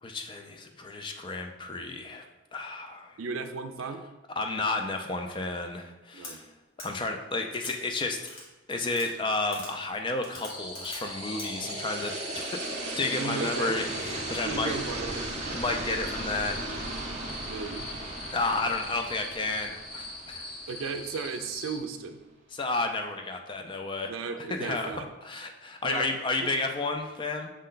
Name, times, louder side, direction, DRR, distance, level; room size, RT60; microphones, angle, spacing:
voice 1, 0.0-3.2 4.4-6.5 6.8-8.3 8.7-12.6 13.0-14.8 15.5-16.6 18.3-20.5 22.5-24.1 24.5-27.5, left 3 dB, 25° left, 4 dB, 0.3 m, -32 dB
voice 2, 3.2-4.0 6.1-6.4 13.1-13.8 14.4-15.3 17.5-17.9 20.7-22.2 24.1-25.1 25.8-26.1 26.4-26.5, right 5 dB, 85° right, 8 dB, 0.4 m, -35 dB
sound 1, 6.2-6.3 6.8-6.9 7.5-7.8 8.3-8.4 8.9-9.1 9.5-9.7 10.2-11.0 11.4-11.5, left 2 dB, 80° left, 1.2 m, -42 dB
sound 2, 10.3-21.4, right 2 dB, 35° right, 0.6 m, -37 dB
sound 3, 10.5-21.8, left 2 dB, 45° left, 1.1 m, -42 dB
6.3 x 2.2 x 3.8 m, 1.1 s
head